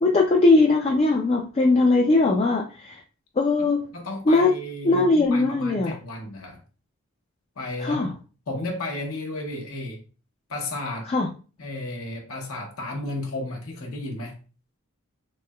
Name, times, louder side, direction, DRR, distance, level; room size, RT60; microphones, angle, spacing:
voice 1, 0.0-3.0 3.4-3.8 4.3-4.5 4.8-5.9 7.8-8.1 11.1-11.3, left 3 dB, 30° left, -1 dB, 0.3 m, -20 dB
voice 2, 3.9-6.6 7.6-8.1 8.5-10.0 10.5-11.1 11.6-14.4, left 2 dB, 75° left, 1 dB, 0.8 m, -33 dB
3.1 x 2.7 x 2.2 m, 0.36 s
head